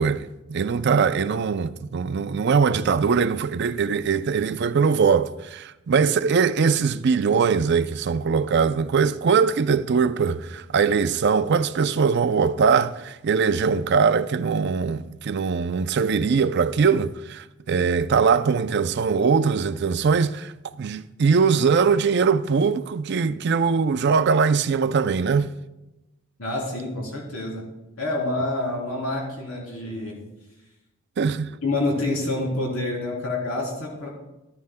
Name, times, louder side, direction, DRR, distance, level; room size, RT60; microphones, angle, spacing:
voice 1, 0.0-20.5 20.8-25.5 31.2-31.6, right 5 dB, 55° right, 0.4 m, -21 dB
voice 2, 26.4-27.7 28.0-30.2 31.6-34.1, left 2 dB, 80° left, 3.4 m, -27 dB
14.5 x 13.0 x 2.2 m
head